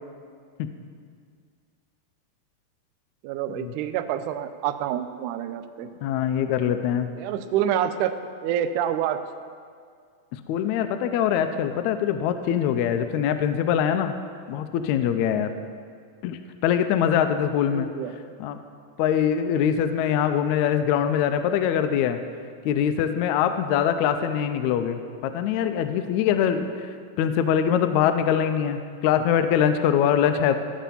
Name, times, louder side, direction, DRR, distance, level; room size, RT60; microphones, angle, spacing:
voice 1, 3.2-5.9 7.2-8.1 8.4-9.2 17.7-18.2, right 10 dB, 80° right, 9 dB, 1.9 m, -27 dB
voice 2, 6.0-7.1 10.3-14.1 14.5-15.5 16.2-17.9 18.4-18.6 19.0-22.2 22.6-26.7 27.2-30.6, left 9 dB, 85° left, 8 dB, 1.7 m, -23 dB
15.0 x 5.0 x 7.1 m, 2.1 s
omnidirectional pair, 3.9 m